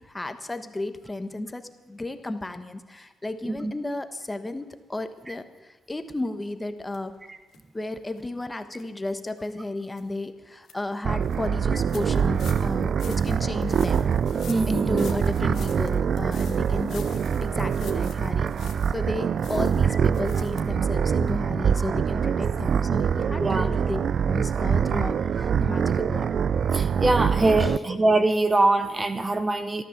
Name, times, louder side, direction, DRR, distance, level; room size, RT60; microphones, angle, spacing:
voice 1, 0.0-7.2 7.7-14.1 14.7-24.0 24.3-26.3 27.6-27.9, left 2 dB, 15° left, 9 dB, 1.2 m, -33 dB
sound 1, 6.9-7.0 7.5-7.6 8.1-8.2 8.7-8.8 9.4-9.5 10.0-10.1 10.4-10.7 11.2-11.4 11.9-19.1 19.4-20.6 20.9-21.0 21.3-21.4, left 8 dB, 65° left, 1.6 m, -47 dB
sound 2, 11.0-27.8, right 7 dB, 55° right, 0.4 m, -24 dB
voice 2, 14.5-15.1 23.4-23.7 25.7-25.9 26.7-29.8, right 2 dB, 20° right, 10 dB, 0.9 m, -23 dB
13.0 x 13.0 x 7.2 m, 1.1 s
cardioid pair, 90°, 0 cm